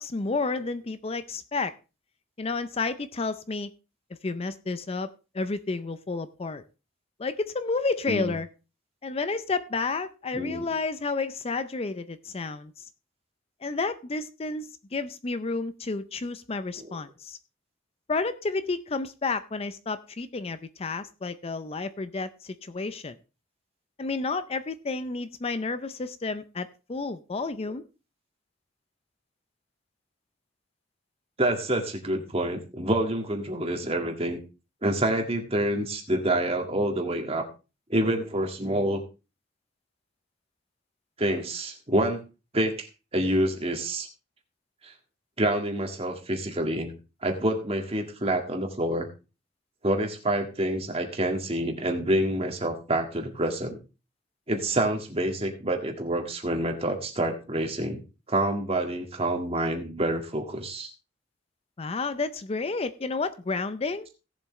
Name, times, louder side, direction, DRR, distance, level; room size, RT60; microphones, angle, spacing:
voice 1, 0.0-1.7 2.4-3.7 4.2-5.1 5.3-6.6 7.2-8.5 9.0-12.9 13.6-17.4 18.1-23.2 24.0-27.8 61.8-64.1, left 3 dB, 30° left, 12 dB, 0.5 m, -31 dB
voice 2, 10.3-10.7 16.8-16.9 31.4-34.4 34.8-37.4 37.9-39.0 41.2-42.2 42.5-44.1 44.8-44.9 45.4-46.9 47.2-49.1 49.8-53.8 54.5-60.9, right 1 dB, 30° right, 4 dB, 1.8 m, -27 dB
17.5 x 7.3 x 3.1 m, 0.30 s
head